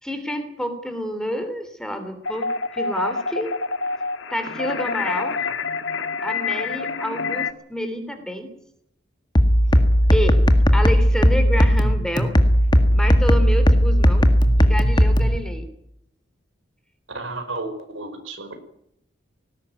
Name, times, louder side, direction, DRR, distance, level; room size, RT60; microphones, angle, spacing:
voice 1, 0.0-2.5 2.7-3.5 4.3-5.4 6.2-8.5 10.1-10.4 10.7-12.4 12.9-15.7, equal, 5° left, 8 dB, 3.0 m, -29 dB
sound 1, 2.2-7.5, left 4 dB, 80° left, 1.6 m, -27 dB
sound 2, 9.4-15.4, equal, 20° left, 1.8 m, -16 dB
voice 2, 17.1-18.5, right 2 dB, 85° right, 6 dB, 5.2 m, -32 dB
19.0 x 17.0 x 9.3 m, 0.74 s
head